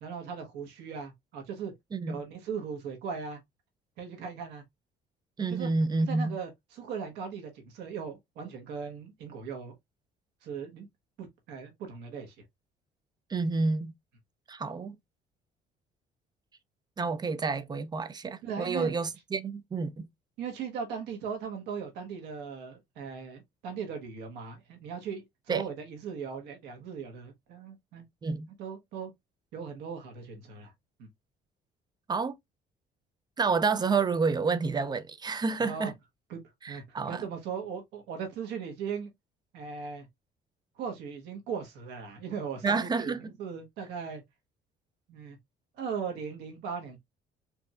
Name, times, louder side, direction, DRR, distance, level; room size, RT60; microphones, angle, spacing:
voice 1, 0.0-1.7 2.1-3.4 4.0-4.6 5.5-5.7 6.1-9.8 10.4-10.9 11.2-12.3 18.4-18.9 20.4-28.0 28.6-29.1 29.5-30.7 31.0-31.1 35.6-35.9 36.3-36.4 36.7-39.1 39.5-40.1 40.8-44.2 45.1-45.4 45.8-47.0, right 6 dB, 85° right, 1.3 m, -38 dB
voice 2, 5.4-6.4 13.3-13.9 14.5-15.0 17.0-20.1 25.5-25.6 28.2-28.5 32.1-32.3 33.4-35.9 36.6-37.2 42.6-43.3, right 4 dB, 25° right, 0.4 m, -29 dB
4.6 x 2.7 x 2.3 m
cardioid pair, 110°, 17 cm